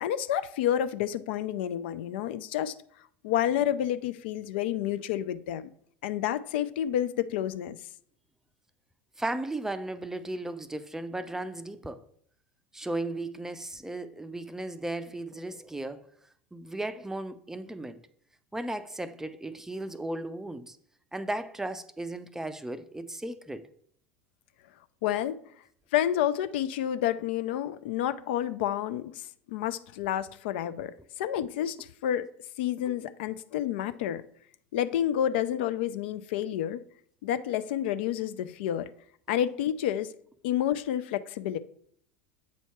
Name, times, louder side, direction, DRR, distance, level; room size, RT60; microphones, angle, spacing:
voice 1, 0.0-2.7 3.2-5.6 6.0-7.8 25.0-25.4 25.9-31.8 32.0-32.3 32.6-34.2 34.7-36.8 37.2-38.9 39.3-40.1 40.4-41.6, left 11 dB, 65° left, 0.4 m, -29 dB
voice 2, 9.2-12.0 12.7-16.1 16.5-18.0 18.5-20.8 21.1-23.7 32.9-33.0, right 2 dB, 5° right, 0.4 m, -35 dB
8.1 x 2.8 x 4.4 m
hypercardioid pair, 80°, 6 cm